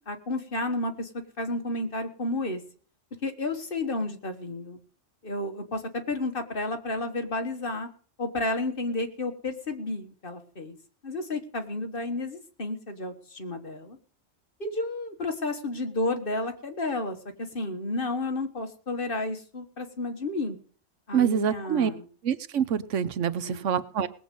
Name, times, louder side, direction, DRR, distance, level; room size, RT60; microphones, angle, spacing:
voice 1, 0.1-1.1 1.4-2.6 3.2-4.8 5.2-7.9 8.2-10.8 11.0-14.0 14.6-20.6 21.1-22.0 23.4-23.7, left 2 dB, 45° left, 6 dB, 1.6 m, -31 dB
voice 2, 21.1-21.9 22.2-24.1, right 8 dB, 75° right, 15 dB, 1.1 m, -26 dB
19.5 x 7.9 x 5.4 m, 0.43 s
omnidirectional pair, 1.3 m